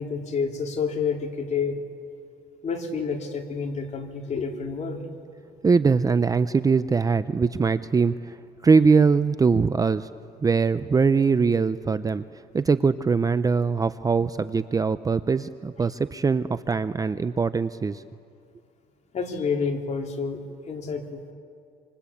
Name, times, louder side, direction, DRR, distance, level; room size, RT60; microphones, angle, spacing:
voice 1, 0.0-1.8 2.6-5.1 19.1-21.3, left 5 dB, 45° left, 2 dB, 3.4 m, -29 dB
voice 2, 5.6-10.1 10.4-18.0, right 5 dB, 20° right, 13 dB, 0.6 m, -22 dB
27.0 x 26.0 x 8.6 m, 2.5 s
cardioid pair, 110°, 17 cm